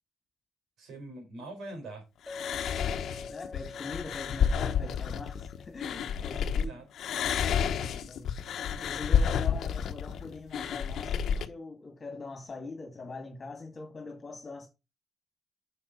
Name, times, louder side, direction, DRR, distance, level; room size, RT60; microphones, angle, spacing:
voice 1, 0.8-2.0 6.5-6.9 8.6-9.6, right 2 dB, 75° right, 4.0 m, -44 dB
sound 1, 2.3-6.6 7.0-11.5, left 7 dB, 70° left, 1.0 m, -30 dB
Chink clink, 2.3-6.7, left 4 dB, 10° left, 1.2 m, -46 dB
voice 2, 2.8-6.8 7.6-8.4 8.7-14.7, left 3 dB, 35° left, 2.1 m, -43 dB
7.1 x 6.7 x 4.3 m
cardioid pair, 90°, 0 cm